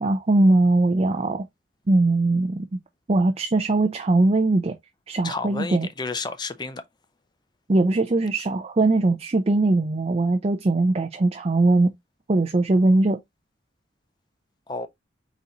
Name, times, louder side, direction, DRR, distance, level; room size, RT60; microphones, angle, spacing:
voice 1, 0.0-1.5 1.9-2.7 3.1-4.7 5.1-5.9 7.7-11.9 12.3-13.2, right 2 dB, 35° right, 0.5 m, -20 dB
voice 2, 5.2-6.8 14.7-14.9, left 4 dB, 25° left, 0.5 m, -31 dB
4.1 x 3.9 x 2.9 m
head